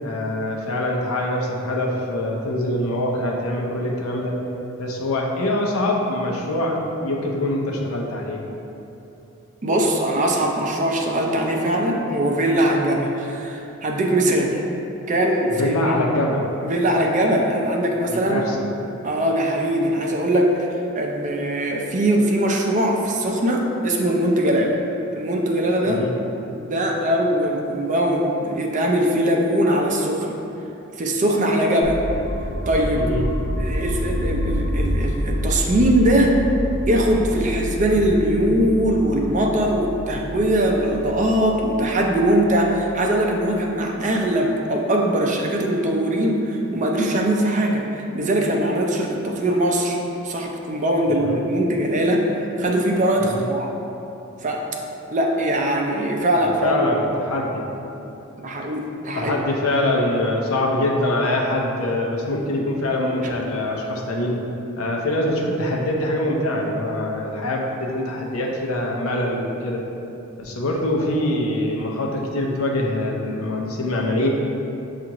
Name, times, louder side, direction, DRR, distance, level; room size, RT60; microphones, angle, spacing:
voice 1, 0.0-4.3 4.8-8.4 15.5-16.4 18.1-18.6 25.8-26.1 33.0-33.3 51.2-51.4 53.3-53.5 56.6-57.6 59.1-64.4 64.8-69.8 70.4-74.3, left 1 dB, 85° left, -1 dB, 0.6 m, -24 dB
voice 2, 9.6-14.6 15.1-15.7 16.6-18.4 19.0-20.7 21.0-24.8 25.1-26.0 26.5-30.4 31.0-32.0 32.7-33.1 33.6-36.4 36.9-50.0 50.2-53.7 54.4-54.7 55.1-56.8 58.4-59.4, right 1 dB, 35° right, 1 dB, 0.4 m, -21 dB
sound 1, 31.8-43.7, equal, 25° left, 0.6 m, -28 dB
7.3 x 2.5 x 2.9 m, 2.9 s
head